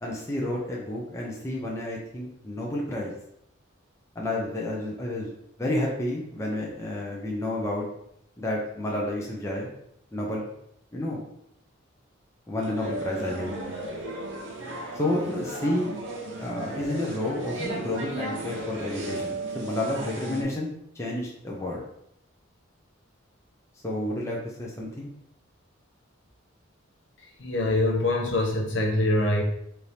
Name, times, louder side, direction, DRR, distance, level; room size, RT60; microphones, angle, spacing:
voice 1, 0.0-3.1 4.1-5.3 5.6-7.9 8.4-9.7 10.1-10.4 10.9-11.2 12.5-13.6 14.9-15.9 16.4-21.8 23.8-25.1, left 1 dB, 15° left, -3 dB, 0.6 m, -30 dB
sound 1, 12.6-20.4, right 2 dB, 65° right, 0.9 m, -35 dB
voice 2, 27.2-29.4, left 2 dB, 60° left, 0 dB, 0.8 m, -24 dB
4.4 x 2.7 x 3.4 m, 0.74 s
head